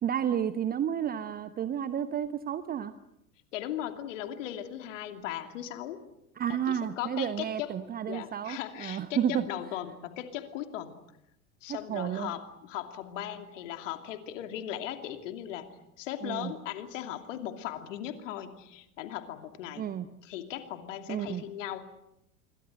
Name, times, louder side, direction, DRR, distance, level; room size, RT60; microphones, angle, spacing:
voice 1, 0.0-2.9 6.4-9.4 11.9-12.3 16.2-16.5 19.8-20.1 21.1-21.4, right 9 dB, 20° right, 13 dB, 0.9 m, -31 dB
voice 2, 3.5-6.0 6.5-7.8 8.1-11.0 11.6-19.9 20.2-21.8, left 11 dB, 55° left, 7 dB, 2.8 m, -38 dB
26.5 x 24.0 x 7.8 m, 0.82 s
figure-of-eight pair, 85°, 44 cm